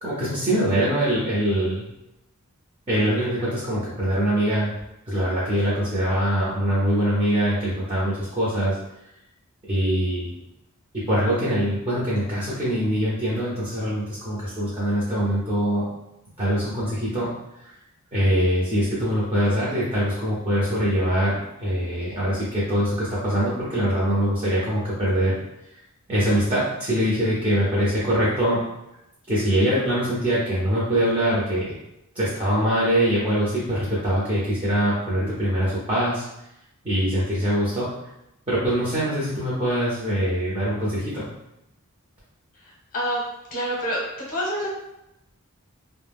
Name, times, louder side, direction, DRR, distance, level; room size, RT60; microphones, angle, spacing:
voice 1, 0.0-1.9 2.9-4.7 5.1-8.8 9.7-10.3 11.1-15.9 16.4-17.3 17.6-17.7 18.1-25.4 26.1-28.6 29.3-31.8 32.1-36.2 36.8-37.9 38.5-41.3, equal, 25° right, -9 dB, 0.7 m, -23 dB
voice 2, 43.5-44.0 44.3-44.7, equal, 40° left, -3 dB, 0.8 m, -26 dB
2.2 x 2.1 x 3.4 m, 0.86 s
head